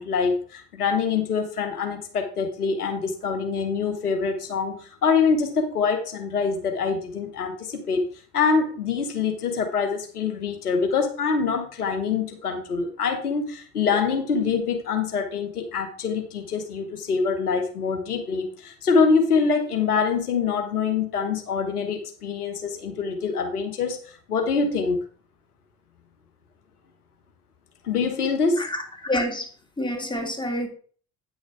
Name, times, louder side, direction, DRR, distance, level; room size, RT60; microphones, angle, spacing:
voice 1, 0.0-8.1 8.3-25.0 27.8-28.6, left 5 dB, 90° left, 1.0 m, -25 dB
voice 2, 28.6-29.5 29.8-30.7, left 1 dB, 10° left, 2.6 m, -28 dB
9.0 x 6.4 x 4.6 m
figure-of-eight pair, 55°, 44 cm